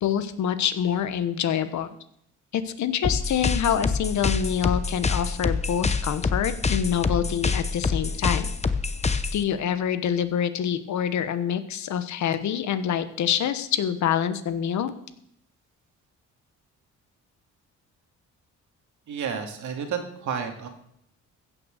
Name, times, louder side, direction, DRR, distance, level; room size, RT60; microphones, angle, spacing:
voice 1, 0.0-1.9 2.5-8.5 9.3-14.9, left 9 dB, 70° left, 11 dB, 1.2 m, -26 dB
sound 1, 3.0-9.4, left 4 dB, 20° left, 0.8 m, -26 dB
voice 2, 19.1-20.7, right 7 dB, 70° right, 4 dB, 2.3 m, -31 dB
15.5 x 6.4 x 6.5 m, 0.73 s
cardioid pair, 90°, 30 cm